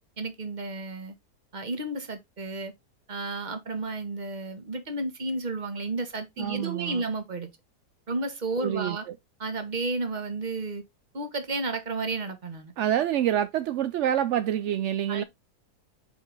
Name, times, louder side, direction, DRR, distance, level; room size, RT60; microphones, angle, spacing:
voice 1, 0.2-1.1 1.5-2.7 3.1-7.5 8.1-9.0 9.4-10.8 11.1-12.7 15.1-15.2, right 3 dB, 30° right, 1.2 m, -32 dB
voice 2, 6.4-7.0 8.6-9.2 12.8-15.2, right 11 dB, 70° right, 0.6 m, -27 dB
5.0 x 4.9 x 3.8 m
omnidirectional pair, 1.7 m